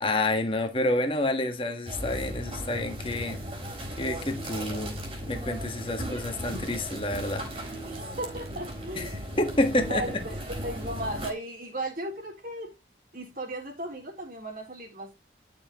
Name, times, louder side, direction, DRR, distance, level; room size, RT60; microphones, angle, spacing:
voice 1, 0.0-3.4 4.0-5.0 5.3-7.5 9.0-9.1 9.4-10.2, left 1 dB, 30° left, 1.5 m, -28 dB
sound 1, 1.9-11.3, equal, 30° right, 3.9 m, -36 dB
voice 2, 7.8-9.2 9.8-12.8 13.1-15.1, right 1 dB, 50° right, 3.5 m, -36 dB
11.5 x 7.0 x 3.0 m
head